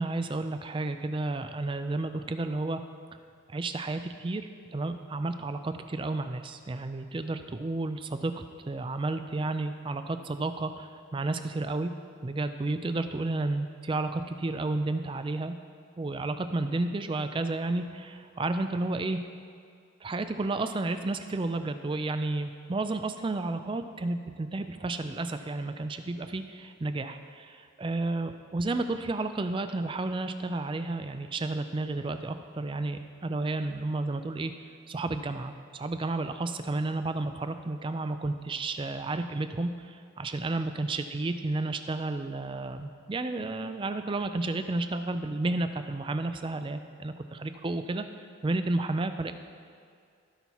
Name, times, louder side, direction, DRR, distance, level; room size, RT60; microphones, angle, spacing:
voice 1, 0.0-2.8 3.5-11.9 12.2-15.5 16.0-19.2 20.0-34.5 34.9-48.0 48.4-49.3, right 2 dB, 25° right, 9 dB, 0.3 m, -32 dB
16.0 x 5.5 x 3.0 m, 2.2 s
head